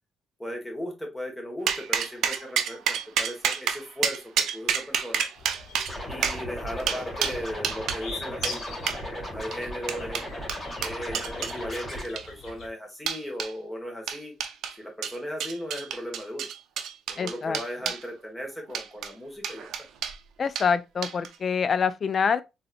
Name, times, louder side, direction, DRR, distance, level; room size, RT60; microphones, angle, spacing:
voice 1, 0.4-5.3 6.1-8.6 9.0-10.2 10.8-14.3 14.7-16.5 17.1-19.9, equal, 10° left, 1.5 m, -37 dB
sound 1, 1.7-8.0 8.4-8.6 8.9-9.0 9.5-11.6 12.0-12.5 13.1-13.5 14.1-14.8 15.0-18.0 18.7-19.1 19.4-20.2 20.6-20.7 21.0-21.4, right 8 dB, 80° right, 0.5 m, -29 dB
sound 2, 5.3-12.7, left 4 dB, 65° left, 0.9 m, -44 dB
Scratching (performance technique), 5.9-12.0, equal, 30° left, 2.0 m, -36 dB
voice 2, 17.2-17.6 20.4-22.4, left 6 dB, 45° left, 0.4 m, -25 dB
3.8 x 2.8 x 2.4 m
cardioid pair, 90°, 0 cm